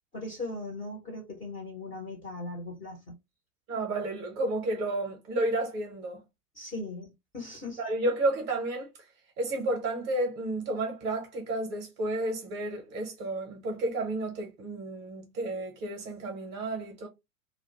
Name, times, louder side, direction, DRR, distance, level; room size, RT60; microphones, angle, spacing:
voice 1, 0.1-3.2 6.5-7.8, left 2 dB, 20° left, 0.5 m, -39 dB
voice 2, 3.7-6.2 7.8-8.9 9.4-17.1, right 2 dB, 25° right, 0.6 m, -31 dB
2.2 x 2.0 x 2.7 m
figure-of-eight pair, 100°, 46 cm